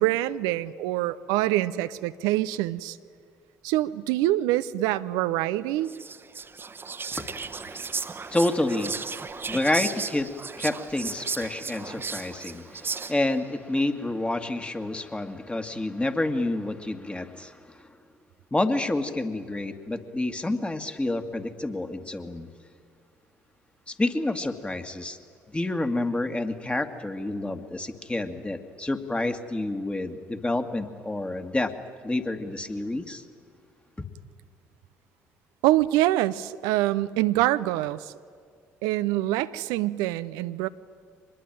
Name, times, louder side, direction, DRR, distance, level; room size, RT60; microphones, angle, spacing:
voice 1, 0.0-3.0 3.6-5.9 35.6-38.1 38.8-40.7, right 15 dB, 70° right, 13 dB, 0.6 m, -25 dB
Whispering, 5.8-13.4, right 4 dB, 30° right, 1.2 m, -35 dB
voice 2, 7.1-17.8 18.5-22.5 23.9-25.2 25.5-31.7 32.0-33.2, left 2 dB, 15° left, 7 dB, 2.1 m, -29 dB
24.5 x 21.0 x 9.1 m, 2.2 s
hypercardioid pair, 50°, 7 cm